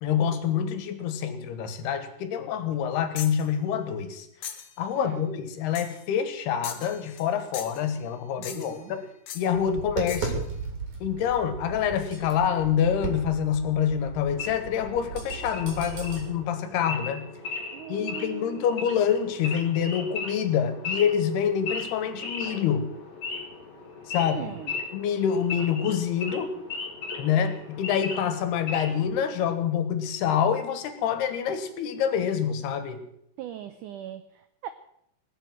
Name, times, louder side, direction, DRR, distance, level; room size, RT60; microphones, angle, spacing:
voice 1, 0.0-4.3 4.8-9.1 9.4-10.4 11.0-17.3 17.9-22.9 24.1-24.5 24.9-26.5 27.2-33.0, left 8 dB, 85° left, 11 dB, 3.5 m, -26 dB
sound 1, 3.2-3.5 4.4-4.7 5.8-6.0 6.6-7.3 7.5-7.9 8.4-8.8 9.3-9.5 10.1-10.4, left 9 dB, 60° left, 1.8 m, -39 dB
voice 2, 5.0-5.3 8.4-8.9 17.7-18.6 24.2-24.7 33.4-34.7, right 11 dB, 75° right, 11 dB, 1.9 m, -39 dB
Tap, 9.6-16.2, right 5 dB, 50° right, 4.7 m, -36 dB
Wild animals / Idling, 14.3-29.1, left 4 dB, 45° left, 4.2 m, -37 dB
20.0 x 8.2 x 7.8 m, 0.73 s
omnidirectional pair, 4.5 m